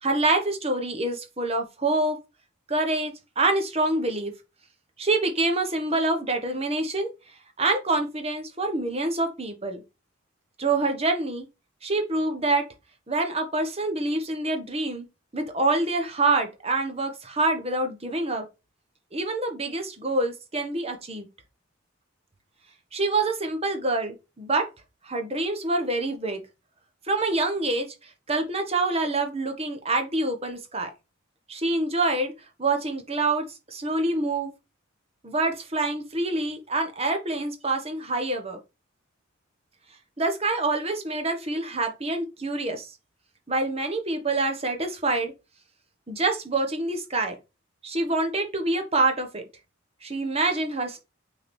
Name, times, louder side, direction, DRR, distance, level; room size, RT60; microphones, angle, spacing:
voice 1, 0.0-2.2 2.7-4.3 5.0-7.1 7.6-9.8 10.6-11.5 11.8-12.6 13.1-15.0 15.3-18.4 19.1-21.3 22.9-24.7 25.0-26.4 27.1-30.9 31.5-32.3 32.6-34.5 35.2-38.6 40.2-42.9 43.5-45.3 46.1-47.3 47.8-49.4 50.0-51.0, right 2 dB, 30° right, 1.3 m, -26 dB
6.5 x 4.0 x 4.4 m
head